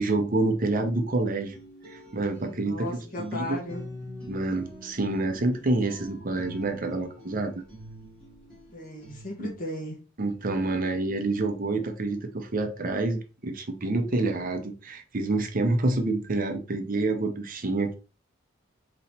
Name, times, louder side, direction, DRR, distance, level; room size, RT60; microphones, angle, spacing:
voice 1, 0.0-1.6 1.8-3.6 4.3-7.6 9.4-9.5 10.2-17.9, right 2 dB, 45° right, 0.8 m, -28 dB
sound 1, 1.4-9.7, equal, 5° left, 2.5 m, -45 dB
voice 2, 2.6-3.9 8.7-10.0, left 1 dB, 45° left, 1.4 m, -36 dB
4.1 x 3.1 x 4.1 m
head